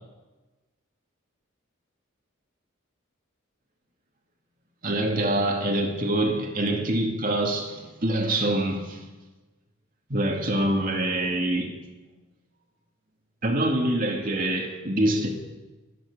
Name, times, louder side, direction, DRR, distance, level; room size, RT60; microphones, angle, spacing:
voice 1, 4.8-9.0 10.1-11.7 13.4-15.3, right 1 dB, 40° right, 2.5 m, -25 dB
26.5 x 10.0 x 5.2 m
head